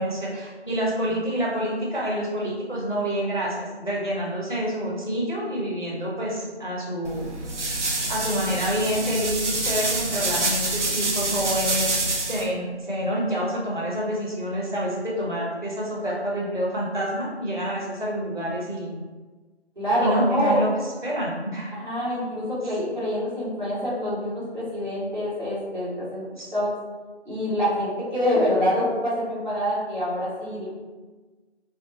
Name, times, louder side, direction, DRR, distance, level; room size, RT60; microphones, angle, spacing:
voice 1, 0.0-7.6 8.0-12.0 12.2-18.9 20.0-20.7 21.0-21.7 26.4-26.5, equal, 45° left, -4 dB, 0.4 m, -27 dB
sound 1, 7.0-12.4, right 2 dB, 85° right, 0.7 m, -27 dB
voice 2, 19.7-20.6 21.7-26.3 26.5-26.7 27.2-30.7, equal, 40° right, -11 dB, 1.4 m, -26 dB
2.7 x 2.1 x 2.6 m, 1.3 s
figure-of-eight pair, 180°, 34 cm